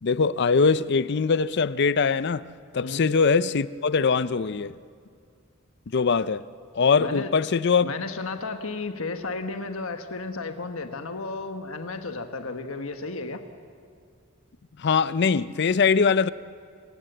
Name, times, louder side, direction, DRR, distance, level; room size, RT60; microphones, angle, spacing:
voice 1, 0.0-2.5 2.7-4.8 5.9-6.4 6.8-7.9 14.8-16.3, left 5 dB, 55° left, 0.5 m, -22 dB
voice 2, 7.0-7.3 7.8-13.4, left 3 dB, 75° left, 1.3 m, -33 dB
29.5 x 16.0 x 7.9 m
head